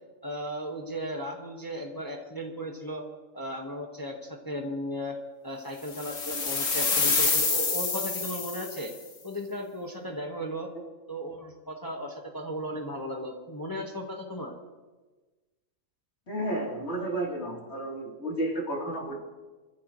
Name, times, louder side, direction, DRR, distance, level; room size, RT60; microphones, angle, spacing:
voice 1, 0.2-3.0 3.3-5.2 5.4-8.9 9.2-10.7 11.1-14.5, equal, 15° left, 0 dB, 1.6 m, -36 dB
sound 1, 5.9-8.9, left 4 dB, 65° left, 2.0 m, -27 dB
voice 2, 16.3-19.2, right 1 dB, 50° left, -3 dB, 3.8 m, -32 dB
26.0 x 15.0 x 3.2 m, 1.3 s
omnidirectional pair, 1.5 m